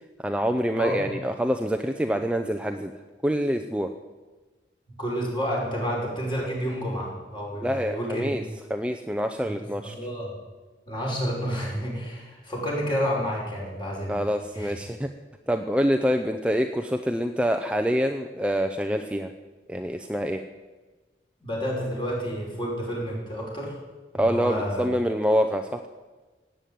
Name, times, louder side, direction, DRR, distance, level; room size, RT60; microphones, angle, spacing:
voice 1, 0.2-2.9 3.2-3.9 7.6-8.4 8.7-9.9 14.1-15.1 15.5-19.3 19.7-20.4 24.1-25.9, equal, 5° right, 5 dB, 0.6 m, -26 dB
voice 2, 5.0-8.3 9.4-10.3 10.9-14.2 14.5-14.8 21.4-23.8 24.2-24.9, equal, 25° left, -2 dB, 5.2 m, -30 dB
17.0 x 9.0 x 9.4 m, 1.3 s
head